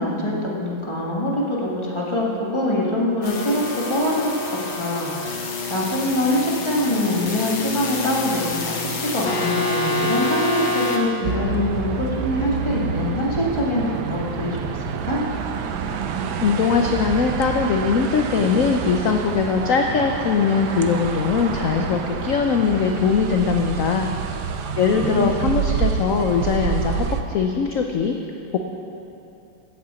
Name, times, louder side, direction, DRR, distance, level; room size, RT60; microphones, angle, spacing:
voice 1, 0.0-4.3 4.7-5.4 5.7-15.2 24.9-25.4, left 1 dB, 15° left, -4 dB, 1.6 m, -24 dB
sound 1, 3.2-11.0, left 3 dB, 85° left, 1.9 m, -27 dB
sound 2, 11.2-27.2, right 6 dB, 70° right, 1.1 m, -28 dB
voice 2, 16.4-24.1 24.7-28.2 28.5-28.6, left 5 dB, 70° left, 3 dB, 0.8 m, -21 dB
8.5 x 7.9 x 8.2 m, 2.9 s
omnidirectional pair, 2.0 m